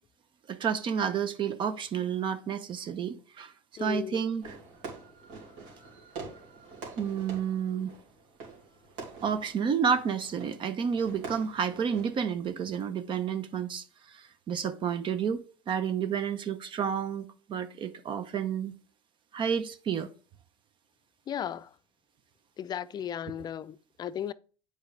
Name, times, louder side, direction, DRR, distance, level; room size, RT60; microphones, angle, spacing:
voice 1, 0.5-3.5 3.8-4.6 7.0-7.9 9.2-18.7 19.3-20.1, right 7 dB, 40° right, 0.8 m, -30 dB
voice 2, 3.8-4.2 21.3-21.7 22.6-24.3, left 9 dB, 35° left, 0.4 m, -35 dB
Fireworks, 4.4-12.5, right 4 dB, 70° right, 2.9 m, -46 dB
8.1 x 5.0 x 3.3 m
supercardioid pair, 95°, 12 cm